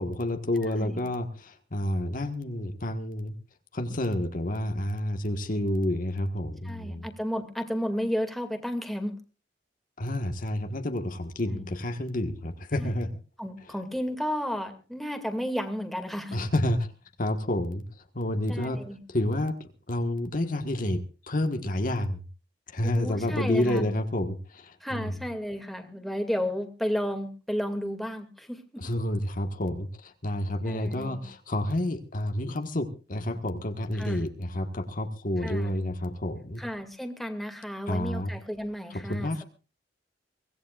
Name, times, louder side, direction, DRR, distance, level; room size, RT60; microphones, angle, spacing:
voice 1, 0.0-3.3 3.7-7.1 10.0-13.1 16.3-16.9 17.2-17.8 18.1-18.8 19.1-22.2 22.7-25.1 28.8-36.6 37.9-38.3 38.9-39.4, left 1 dB, 50° left, 6 dB, 1.5 m, -29 dB
voice 2, 0.6-1.1 4.6-4.8 6.6-9.2 11.5-11.7 12.8-13.0 13.4-16.4 18.5-19.0 22.8-23.9 24.8-28.8 30.6-31.2 33.9-34.2 35.4-35.7 36.6-39.4, equal, ahead, 6 dB, 2.3 m, -33 dB
24.0 x 17.5 x 2.4 m, 0.34 s
head